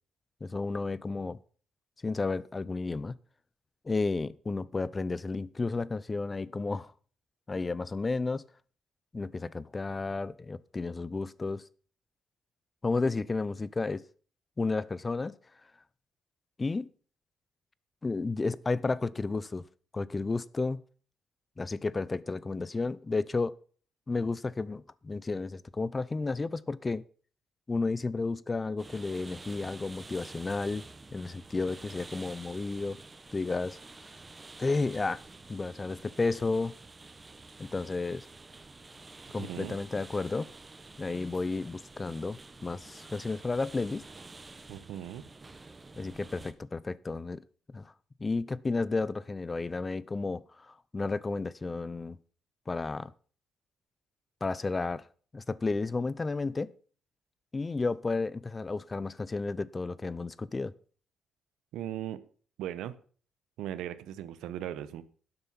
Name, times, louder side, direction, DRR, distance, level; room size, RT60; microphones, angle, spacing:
voice 1, 0.4-1.4 2.0-3.1 3.8-6.9 7.5-8.4 9.1-11.6 12.8-14.0 14.6-15.4 16.6-16.9 18.0-19.6 19.9-20.8 21.6-23.5 24.1-27.0 27.7-30.8 31.1-33.0 33.3-33.8 34.6-35.2 35.5-36.7 37.6-38.2 39.3-40.5 41.0-44.0 46.0-47.4 47.7-47.9 48.2-52.2 52.7-53.1 54.4-55.0 55.3-56.7 57.5-60.7, left 3 dB, 25° left, 0.6 m, -32 dB
sound 1, 28.8-46.5, right 3 dB, 25° right, 1.0 m, -49 dB
voice 2, 39.4-39.8 44.7-45.3 61.7-62.2 62.6-63.0 63.6-65.0, right 11 dB, 90° right, 0.9 m, -38 dB
12.0 x 7.9 x 5.7 m
cardioid pair, 90°, 0 cm